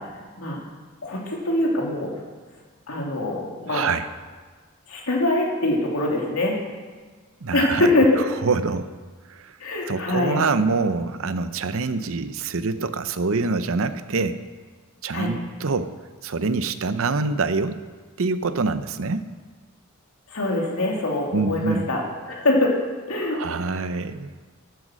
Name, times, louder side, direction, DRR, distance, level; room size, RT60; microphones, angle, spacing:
voice 1, 1.0-2.1 2.9-3.8 4.9-6.6 7.5-8.2 9.6-10.4 15.1-15.3 20.3-22.7 23.1-23.4, left 2 dB, 70° left, -1 dB, 2.7 m, -23 dB
voice 2, 3.7-4.1 7.4-7.9 8.4-8.9 9.3-9.6 9.9-14.4 15.0-15.9 16.2-17.8 18.2-19.2 21.3-21.9 23.2-24.3, right 4 dB, 65° right, 12 dB, 0.7 m, -25 dB
11.5 x 9.4 x 6.3 m, 1.4 s
head